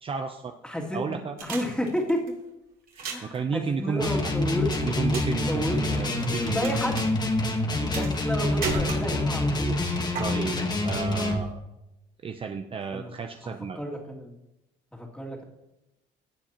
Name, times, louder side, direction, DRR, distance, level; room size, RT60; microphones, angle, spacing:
voice 1, 0.0-0.5 0.9-1.4 2.9-4.4 4.8-6.8 7.8-8.0 10.2-10.6 10.8-11.6 12.2-13.8, right 5 dB, 35° right, 6 dB, 0.6 m, -32 dB
voice 2, 0.6-2.2 3.0-5.1 5.5-7.1 8.0-9.8 10.3-10.6 12.9-13.1 13.4-14.4 14.9-15.4, equal, 5° left, -1 dB, 2.4 m, -32 dB
sound 1, 1.4-2.3 2.9-3.4 4.7-5.4 5.6-6.7 7.0-7.1 7.9-8.3 8.6-9.4 10.2-10.3, right 4 dB, 60° right, 3.1 m, -33 dB
sound 2, 4.0-11.4, left 2 dB, 25° left, 1.3 m, -27 dB
17.0 x 7.6 x 2.9 m, 0.92 s
cardioid pair, 110°, 17 cm